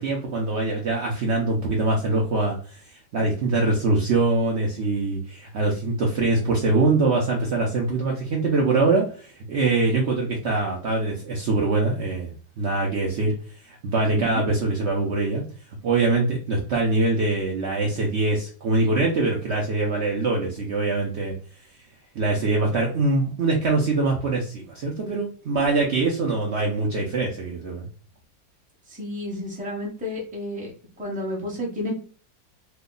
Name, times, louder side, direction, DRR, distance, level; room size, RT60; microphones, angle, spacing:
voice 1, 0.0-2.8 3.1-13.3 13.6-15.4 15.8-21.3 22.1-27.9, right 3 dB, 85° right, -1 dB, 0.6 m, -23 dB
voice 2, 14.1-14.4 28.9-30.7 31.0-32.0, left 1 dB, 5° right, -2 dB, 0.6 m, -31 dB
3.0 x 2.2 x 3.7 m, 0.42 s
omnidirectional pair, 2.0 m